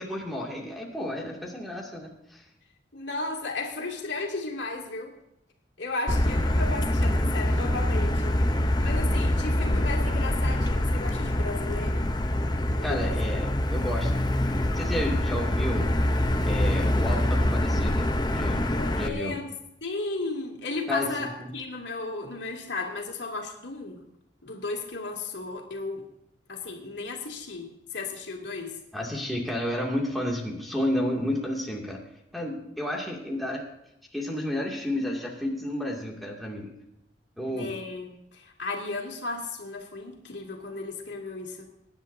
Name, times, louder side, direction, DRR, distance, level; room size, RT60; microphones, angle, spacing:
voice 1, 0.0-2.4 12.8-14.1 14.5-15.9 16.5-19.4 20.9-21.1 21.4-21.5 28.9-32.0 32.3-33.6 34.1-36.7 37.4-37.7, left 1 dB, ahead, -3 dB, 2.4 m, -31 dB
voice 2, 2.9-5.2 5.8-8.4 8.8-12.1 12.8-13.2 18.7-19.5 19.8-24.0 24.4-26.1 26.5-28.8 37.5-41.7, left 3 dB, 75° left, 0 dB, 2.6 m, -34 dB
Motor vehicle (road), 6.1-19.1, left 1 dB, 25° left, 0.7 m, -25 dB
23.0 x 10.5 x 2.7 m, 0.82 s
head